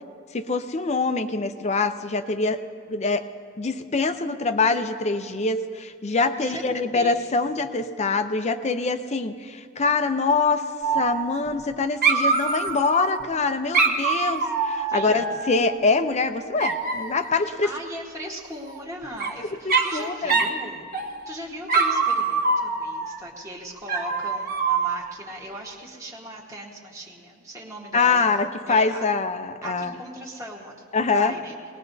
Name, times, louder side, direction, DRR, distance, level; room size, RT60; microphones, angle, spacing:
voice 1, 0.3-2.6 2.9-3.2 3.6-10.6 10.9-17.7 19.9-20.3 27.9-29.9 30.9-31.3, left 4 dB, 30° left, 9 dB, 0.5 m, -24 dB
voice 2, 6.3-6.6 6.9-7.2 14.9-15.2 17.4-28.4 28.7-29.0 29.6-31.5, right 1 dB, 15° right, -4 dB, 1.3 m, -38 dB
Dog, 10.8-11.7 12.0-13.2 13.7-15.8 16.6-17.3 18.7-19.3 19.7-20.0 20.3-20.6 20.9-21.3 21.7-23.2 23.9-25.1, right 4 dB, 45° right, 1.0 m, -24 dB
20.5 x 19.5 x 2.7 m, 2.2 s
head